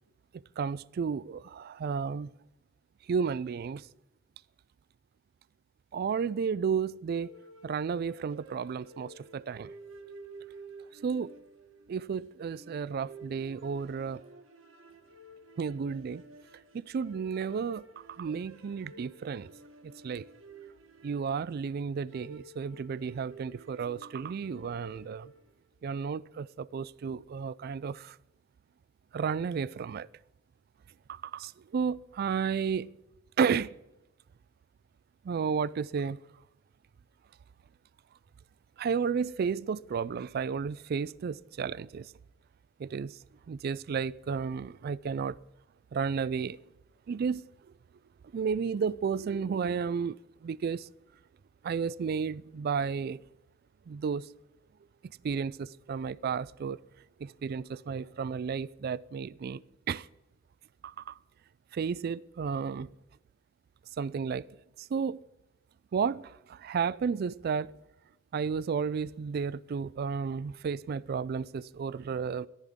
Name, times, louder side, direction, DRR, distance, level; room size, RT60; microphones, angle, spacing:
voice 1, 0.6-2.3 3.1-3.8 5.9-7.3 7.6-9.7 11.0-11.3 11.9-14.2 15.6-16.2 16.7-19.5 20.0-20.2 21.0-25.3 25.8-28.2 29.1-30.1 31.1-32.9 33.4-33.7 35.2-36.2 38.8-42.1 42.8-43.2 43.5-45.4 45.9-46.6 47.1-47.4 48.3-50.2 50.4-50.9 51.6-53.2 53.9-54.3 55.2-56.8 57.2-60.1 60.8-61.1 61.7-62.9 64.0-64.5 64.8-65.2 65.9-67.7 68.3-72.5, right 6 dB, 50° right, 0.3 m, -32 dB
sound 1, 7.1-25.6, right 2 dB, 90° right, 1.6 m, -52 dB
14.0 x 11.5 x 3.6 m
head